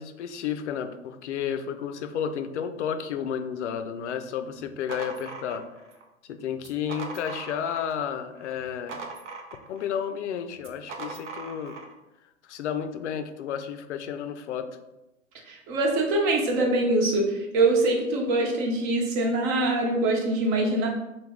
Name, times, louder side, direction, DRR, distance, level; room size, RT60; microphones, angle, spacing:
voice 1, 0.0-5.7 6.3-9.0 9.7-11.8 12.5-14.8, left 8 dB, 65° left, 8 dB, 0.5 m, -32 dB
sound 1, 4.6-6.0 6.6-8.0 8.4-9.9 10.6-11.9, right 4 dB, 65° right, 0.7 m, -40 dB
voice 2, 15.5-20.9, right 2 dB, 40° right, 0 dB, 0.9 m, -24 dB
3.3 x 2.3 x 3.5 m, 0.96 s
figure-of-eight pair, 105°, 39 cm